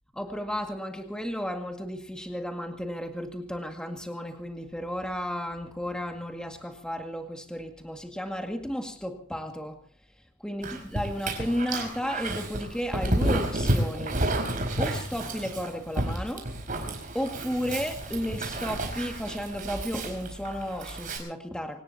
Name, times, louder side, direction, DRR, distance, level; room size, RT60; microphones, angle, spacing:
voice 1, 0.2-9.8 10.4-14.2 14.8-16.5 17.1-21.8, equal, 5° left, 4 dB, 2.0 m, -33 dB
Dog, 10.6-21.2, right 1 dB, 45° right, 4.8 m, -31 dB
25.5 x 18.5 x 2.8 m, 0.43 s
head